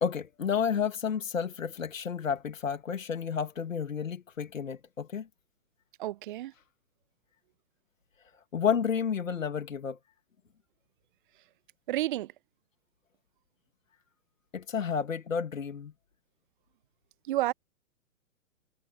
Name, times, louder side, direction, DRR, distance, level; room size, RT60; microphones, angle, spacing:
voice 1, 0.0-5.3 8.5-10.0 14.5-15.9, left 7 dB, 65° left, 2.5 m, -31 dB
voice 2, 6.0-6.5 11.9-12.3 17.3-17.5, right 15 dB, 35° right, 1.2 m, -30 dB
figure-of-eight pair, 125°, 42 cm